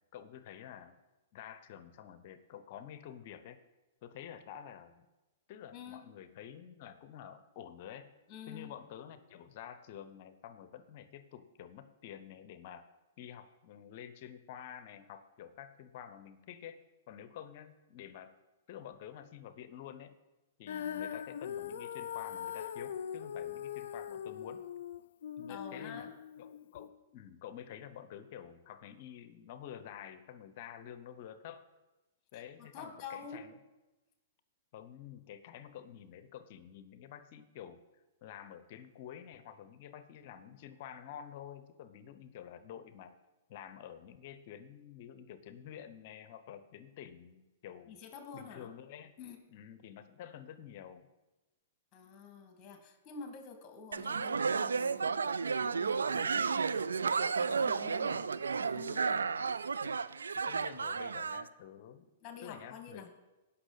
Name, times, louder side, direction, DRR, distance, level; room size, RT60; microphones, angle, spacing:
voice 1, 0.1-1.0 1.3-3.6 4.0-5.1 5.5-8.1 8.5-12.9 13.2-16.8 17.1-18.3 18.7-20.2 20.6-24.6 25.4-26.1 26.4-31.6 32.3-33.6 34.7-37.8 38.2-43.1 43.5-48.0 48.3-49.2 49.5-51.1 59.8-59.9 60.3-62.1 62.4-63.1, left 9 dB, 50° left, 11 dB, 0.8 m, -49 dB
voice 2, 5.7-6.0 8.3-8.7 25.5-26.1 32.3-33.4 47.9-48.7 49.2-49.4 51.9-58.3 58.6-59.3 62.2-63.1, left 6 dB, 30° left, 5 dB, 2.0 m, -49 dB
Female singing, 20.7-26.9, left 9 dB, 70° left, 0.4 m, -41 dB
sound 1, 53.9-61.4, right 5 dB, 85° right, 0.3 m, -32 dB
17.0 x 5.8 x 4.0 m, 1.1 s
hypercardioid pair, 120°, 0 cm